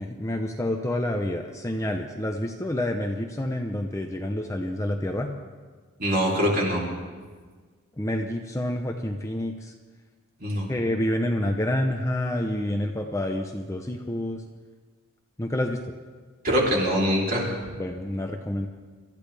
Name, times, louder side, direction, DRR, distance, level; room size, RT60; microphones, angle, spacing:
voice 1, 0.0-5.4 8.0-9.7 10.7-14.4 15.4-15.8 17.8-18.7, left 1 dB, 15° left, 3 dB, 0.7 m, -28 dB
voice 2, 6.0-6.8 10.4-10.7 16.4-17.5, equal, 40° right, -3 dB, 3.4 m, -23 dB
25.5 x 13.5 x 3.4 m, 1.5 s
head